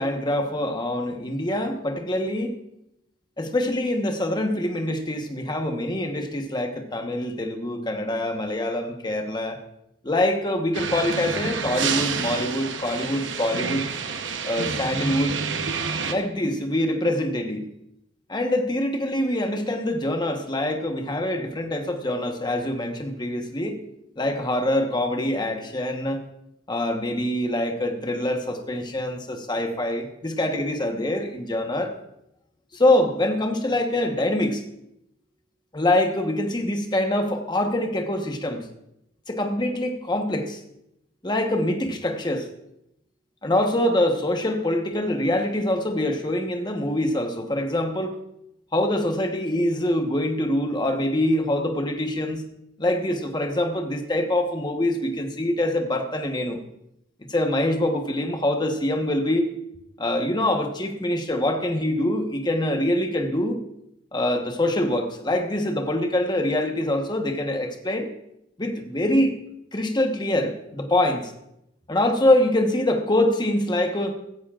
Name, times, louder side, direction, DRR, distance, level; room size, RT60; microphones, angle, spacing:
voice 1, 0.0-2.5 3.4-9.6 10.0-13.8 14.4-15.4 16.1-17.6 18.3-23.8 24.2-26.2 26.7-31.9 32.7-34.6 35.7-38.6 39.3-40.6 41.2-42.5 43.4-48.1 48.7-52.4 52.8-56.6 57.3-59.4 60.0-63.6 64.1-68.1 68.6-69.3 69.7-71.3 71.9-74.1, left 1 dB, 25° left, 4 dB, 1.2 m, -24 dB
sound 1, 10.7-16.1, right 5 dB, 75° right, 1.0 m, -28 dB
16.0 x 13.5 x 2.5 m, 0.80 s
head